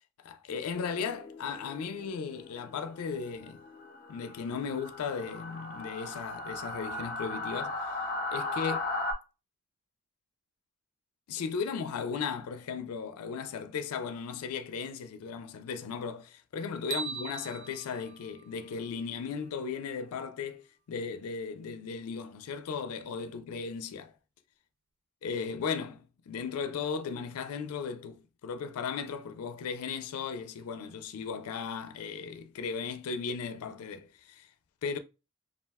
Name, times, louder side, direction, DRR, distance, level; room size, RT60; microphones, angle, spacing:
voice 1, 0.2-3.6 4.1-7.8 8.3-8.8 11.3-24.1 25.2-34.5 34.8-35.0, left 6 dB, 85° left, 0.4 m, -36 dB
sound 1, 0.7-9.1, left 2 dB, 40° left, 0.6 m, -38 dB
sound 2, 16.9-19.2, right 7 dB, 55° right, 0.3 m, -41 dB
2.4 x 2.2 x 3.3 m
head